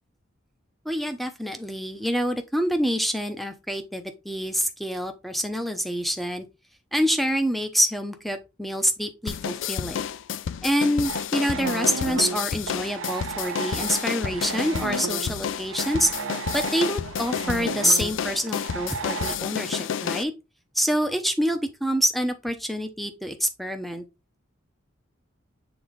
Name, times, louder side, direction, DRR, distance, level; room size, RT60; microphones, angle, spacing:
voice 1, 0.8-6.5 6.9-10.0 10.6-16.1 16.5-20.3 20.7-24.0, equal, ahead, 0.8 m, -26 dB
sound 1, 9.3-20.2, left 8 dB, 70° left, 0.4 m, -30 dB
sound 2, 11.0-19.4, right 4 dB, 90° right, 0.7 m, -33 dB
7.1 x 3.9 x 3.9 m
head